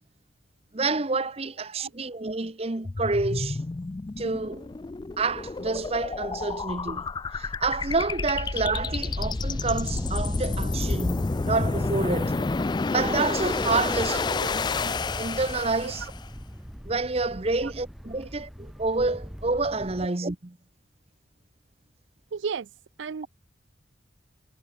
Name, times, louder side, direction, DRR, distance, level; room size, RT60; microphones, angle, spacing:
voice 1, 0.7-3.6 4.2-4.7 5.2-7.1 7.3-12.4 12.9-16.0 16.8-20.4, right 3 dB, 30° right, 0.9 m, -28 dB
sound 1, 2.8-16.2, left 3 dB, 20° left, 0.3 m, -30 dB
Thunder, 8.9-20.1, equal, ahead, 2.6 m, -39 dB
voice 2, 14.1-14.5 15.8-16.1 17.6-17.7 20.0-20.1 22.3-22.7 23.0-23.3, right 6 dB, 75° right, 0.5 m, -34 dB
head